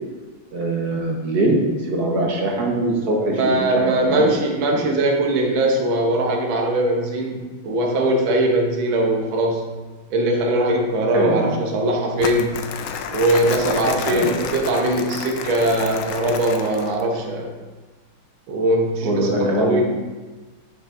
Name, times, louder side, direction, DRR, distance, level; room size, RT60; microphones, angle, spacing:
voice 1, 0.5-4.3 11.1-11.5 14.0-14.3 19.0-19.8, right 1 dB, 55° right, -1 dB, 1.6 m, -22 dB
voice 2, 3.2-9.6 10.1-12.6 13.1-17.5 18.5-19.8, right 1 dB, 70° right, 1 dB, 1.8 m, -21 dB
Crumpling crinkling, 12.2-17.1, left 7 dB, 90° left, 1.5 m, -30 dB
9.3 x 6.1 x 2.6 m, 1.3 s
omnidirectional pair, 2.3 m